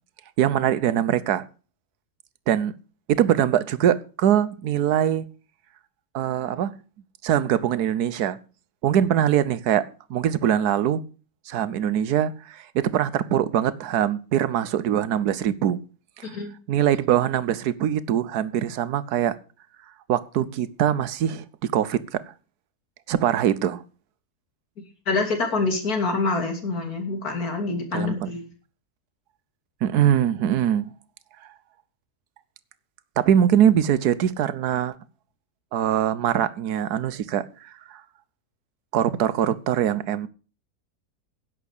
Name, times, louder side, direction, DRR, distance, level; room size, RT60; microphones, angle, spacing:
voice 1, 0.4-1.5 2.5-2.7 3.1-5.2 6.1-6.7 7.2-8.4 8.8-11.0 11.5-15.8 16.2-16.3 16.7-19.4 20.1-22.2 23.1-23.8 27.9-28.3 29.8-30.9 33.2-35.0 35.7-38.0 38.9-40.3, right 10 dB, 75° right, 1.4 m, -22 dB
voice 2, 16.2-16.5 25.1-28.5, left 3 dB, 65° left, 3.4 m, -26 dB
11.0 x 9.0 x 6.6 m
omnidirectional pair, 1.7 m